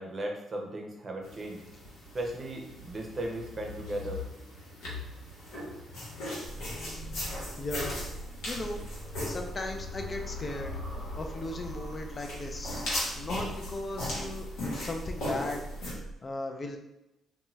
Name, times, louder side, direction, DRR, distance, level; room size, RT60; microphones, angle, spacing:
voice 1, 0.0-1.6 2.1-4.2, right 1 dB, 35° right, 1 dB, 0.6 m, -36 dB
sound 1, 1.2-15.9, left 1 dB, 90° left, 1.1 m, -38 dB
sound 2, 6.4-16.2, right 2 dB, 80° right, 0.5 m, -43 dB
voice 2, 7.6-8.0 8.4-8.8 9.3-10.7 11.2-14.5 14.7-16.8, left 2 dB, 35° left, 3 dB, 0.4 m, -37 dB
2.6 x 2.2 x 3.0 m, 0.91 s
cardioid pair, 90°, 0 cm